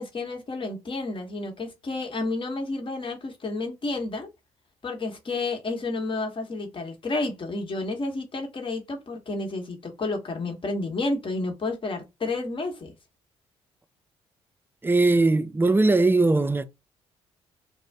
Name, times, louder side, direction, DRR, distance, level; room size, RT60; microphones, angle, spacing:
voice 1, 0.0-4.3 4.8-12.9, left 2 dB, 40° left, 1.0 m, -31 dB
voice 2, 14.8-16.6, right 2 dB, 15° right, 0.4 m, -20 dB
2.4 x 2.0 x 3.2 m
hypercardioid pair, 50°, 14 cm